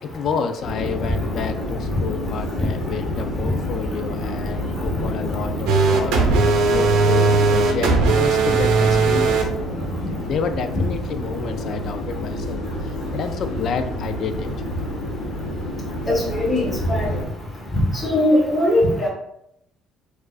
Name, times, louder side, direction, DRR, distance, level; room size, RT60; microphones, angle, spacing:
voice 1, 0.0-6.2 6.7-9.5 10.2-14.5, left 6 dB, 45° left, 8 dB, 0.3 m, -29 dB
sound 1, 0.6-17.3, left 1 dB, 80° left, 0.8 m, -29 dB
sound 2, 5.7-9.4, right 4 dB, 85° right, 0.6 m, -17 dB
voice 2, 16.1-17.1 18.0-19.1, left 1 dB, 10° left, -4 dB, 0.8 m, -19 dB
4.6 x 2.4 x 2.3 m, 0.77 s
cardioid pair, 155°, 0 cm